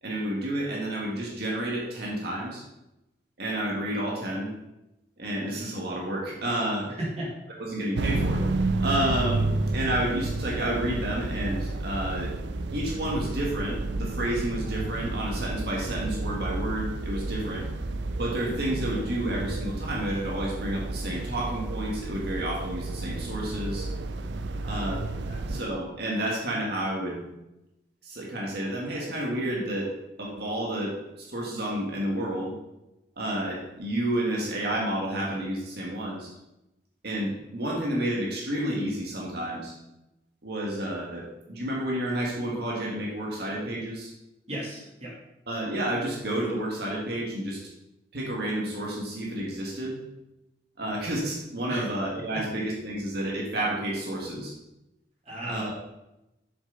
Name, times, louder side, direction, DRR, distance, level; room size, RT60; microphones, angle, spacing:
voice 1, 0.0-2.6 3.4-4.5 5.2-6.9 7.6-9.5 9.7-12.3 12.7-17.7 18.2-23.9 24.6-25.0 25.4-27.2 28.0-29.9 30.2-32.6 33.2-36.3 37.0-39.7 40.4-44.1 45.5-47.6 48.1-50.0 50.8-54.5 55.5-55.7, right 1 dB, 65° right, -3 dB, 1.8 m, -30 dB
voice 2, 6.8-7.3 24.6-24.8 25.2-25.4 44.5-45.1 51.7-51.9 52.3-52.4 55.2-55.7, right 1 dB, 35° right, -6 dB, 2.9 m, -35 dB
sound 1, 7.9-25.6, right 2 dB, 80° right, 0.5 m, -31 dB
7.8 x 6.9 x 3.9 m, 0.92 s
head